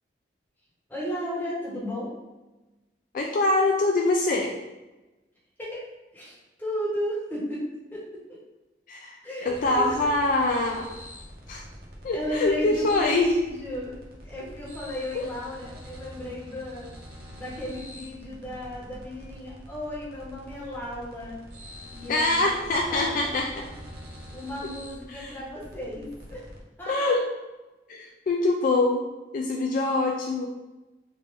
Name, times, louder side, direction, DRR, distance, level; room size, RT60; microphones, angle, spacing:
voice 1, 0.9-2.1 5.6-5.8 6.1-8.4 9.2-9.9 12.1-16.9 17.3-21.4 21.9-23.3 23.6-23.7 24.3-26.4 26.8-27.2, equal, 10° left, -7 dB, 1.1 m, -34 dB
voice 2, 3.1-4.5 8.9-10.9 11.5-11.6 12.0-13.3 15.1-15.2 22.1-23.5 25.1-25.3 26.9-27.2 27.9-29.0 29.3-30.5, left 2 dB, 50° left, 1 dB, 0.3 m, -24 dB
sound 1, 9.5-26.6, equal, 60° right, 0.7 m, -45 dB
3.3 x 2.5 x 3.3 m, 1.1 s
head